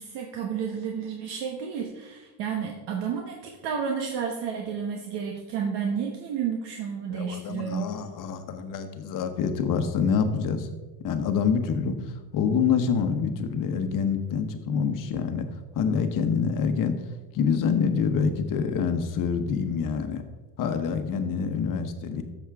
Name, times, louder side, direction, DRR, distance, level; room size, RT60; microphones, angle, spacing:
voice 1, 0.0-7.9, right 7 dB, 70° right, 2 dB, 1.2 m, -31 dB
voice 2, 7.1-10.7 11.0-15.5 15.7-17.0 17.3-20.2 20.6-22.2, left 6 dB, 50° left, 8 dB, 1.1 m, -26 dB
12.0 x 7.2 x 3.5 m, 1.2 s
cardioid pair, 145°, 43 cm